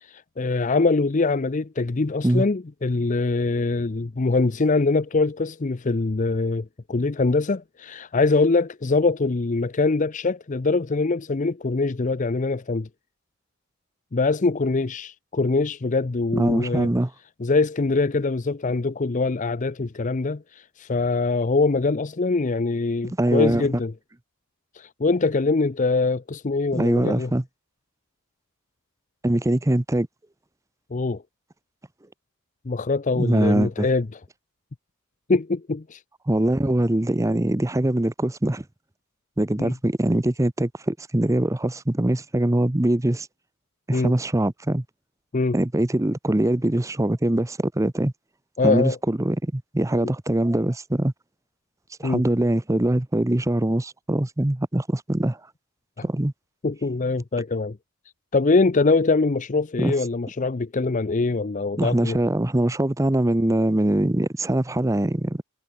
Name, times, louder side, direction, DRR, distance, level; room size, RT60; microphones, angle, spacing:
voice 1, 0.0-12.9 14.1-16.9 17.4-23.9 24.7-27.3 30.9-31.2 32.7-34.1 35.3-36.0 39.6-39.7 43.9-44.1 45.3-45.6 48.6-49.0 50.0-50.1 52.0-52.2 56.0-56.1 56.6-57.8 58.3-62.2, left 3 dB, 35° left, 0.6 m, -23 dB
voice 2, 16.3-17.1 23.2-23.7 26.7-27.4 29.2-30.1 33.1-33.9 36.3-38.6 39.4-43.3 43.9-44.8 45.5-48.1 48.6-51.1 52.0-55.4 56.0-56.3 59.8-59.9 61.8-65.4, right 1 dB, 15° right, 0.7 m, -22 dB
head